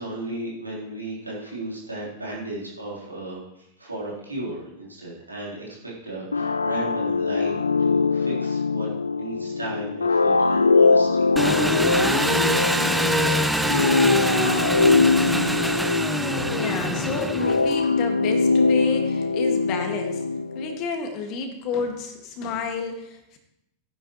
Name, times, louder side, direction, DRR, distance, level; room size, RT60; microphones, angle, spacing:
voice 1, 0.0-11.2, right 1 dB, 80° right, -5 dB, 3.7 m, -35 dB
sound 1, 6.3-20.9, left 4 dB, 80° left, 0.3 m, -22 dB
Engine, 11.4-17.9, right 1 dB, 5° right, 0.6 m, -24 dB
voice 2, 16.4-20.2 20.5-23.4, left 5 dB, 40° left, 5 dB, 1.9 m, -31 dB
14.5 x 10.0 x 3.1 m, 0.83 s
figure-of-eight pair, 90°, 0 cm